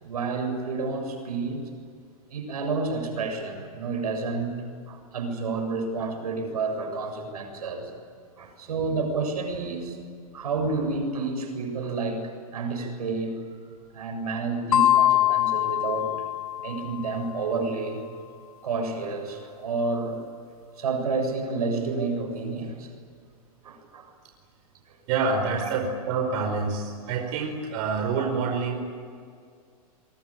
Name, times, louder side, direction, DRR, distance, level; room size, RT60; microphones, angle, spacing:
voice 1, 0.0-1.6 2.3-7.9 8.4-10.0 10.3-16.1 16.6-18.0 18.6-20.2 20.8-22.9 23.6-24.1 24.9-25.0, right 3 dB, 85° right, 5 dB, 7.5 m, -30 dB
sound 1, 14.7-17.2, left 13 dB, 75° left, 1.6 m, -23 dB
voice 2, 25.1-28.8, right 4 dB, 55° right, 3 dB, 5.0 m, -27 dB
28.0 x 23.5 x 9.0 m, 2.2 s
hypercardioid pair, 120°, 19 cm